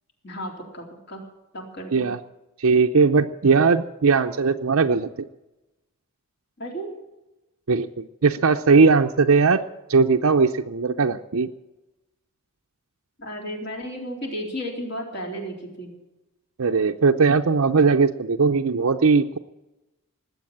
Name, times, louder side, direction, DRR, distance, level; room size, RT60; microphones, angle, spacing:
voice 1, 0.2-1.2 1.5-2.1 6.6-7.0 13.2-15.9, equal, 50° left, 1 dB, 3.8 m, -33 dB
voice 2, 2.6-5.3 7.7-9.6 9.9-11.5 16.6-19.4, right 4 dB, 70° right, 4 dB, 0.6 m, -19 dB
20.0 x 8.1 x 8.7 m, 1.0 s
head